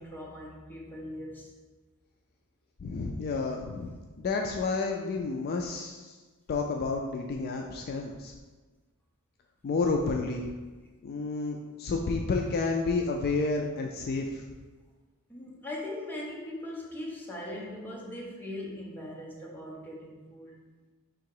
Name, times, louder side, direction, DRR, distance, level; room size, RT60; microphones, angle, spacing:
voice 1, 0.0-1.5 15.3-20.6, left 1 dB, 10° left, -3 dB, 0.7 m, -40 dB
voice 2, 2.8-6.1 6.5-8.3 9.6-10.5 11.0-14.4, left 3 dB, 45° left, 2 dB, 0.3 m, -30 dB
3.6 x 2.8 x 4.7 m, 1.3 s
head